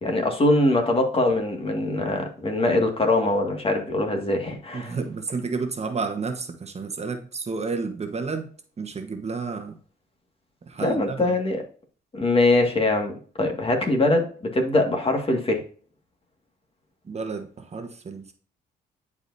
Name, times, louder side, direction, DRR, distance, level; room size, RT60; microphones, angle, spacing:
voice 1, 0.0-4.9 10.8-11.6 12.1-15.6, left 2 dB, 30° left, 1.9 m, -22 dB
voice 2, 4.7-8.5 8.8-9.8 10.7-11.4 17.0-18.3, right 4 dB, 35° right, 1.2 m, -31 dB
10.5 x 4.9 x 2.7 m
cardioid pair, 85°, 19 cm